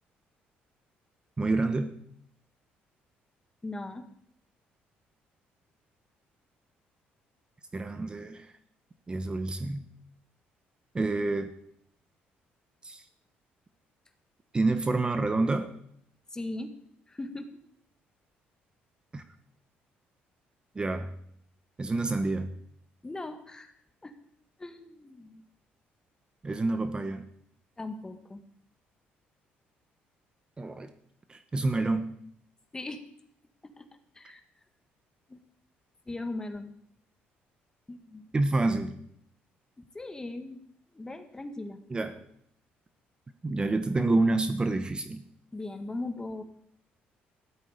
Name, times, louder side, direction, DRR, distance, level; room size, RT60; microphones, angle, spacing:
voice 1, 1.4-2.0 7.7-8.5 9.1-9.8 10.9-11.5 12.8-13.0 14.5-15.7 19.1-19.2 20.7-21.1 21.8-22.5 26.4-27.3 30.6-30.9 31.3-32.1 38.3-38.9 41.9-42.3 43.4-45.2, right 2 dB, 25° right, 9 dB, 1.1 m, -28 dB
voice 2, 3.6-4.1 16.3-16.8 17.1-17.6 23.0-23.8 24.0-24.2 24.6-25.4 27.8-28.4 32.7-33.0 33.6-33.9 34.2-34.4 35.3-35.4 36.1-36.7 37.9-38.3 39.9-40.6 40.9-41.8 45.5-46.4, left 2 dB, 15° left, 7 dB, 1.7 m, -38 dB
14.5 x 12.5 x 5.1 m, 0.69 s
cardioid pair, 100°, 4 cm